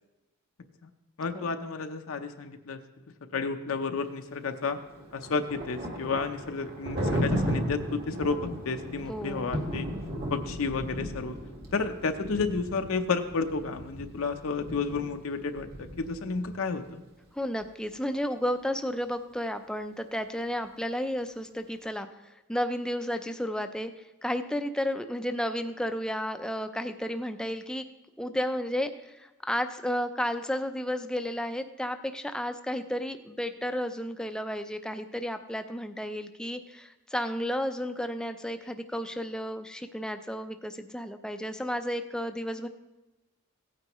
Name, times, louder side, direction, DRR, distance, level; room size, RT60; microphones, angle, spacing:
voice 1, 1.2-2.8 3.3-4.8 5.1-9.9 10.3-11.4 11.7-17.0, left 4 dB, 70° left, 6 dB, 0.7 m, -31 dB
Thunder, 4.8-16.6, equal, 50° right, 1.6 m, -35 dB
voice 2, 9.1-9.5 17.3-22.1 22.5-23.9 24.2-27.8 28.2-42.7, equal, 5° left, 8 dB, 0.5 m, -32 dB
16.5 x 9.1 x 3.0 m, 1.1 s
head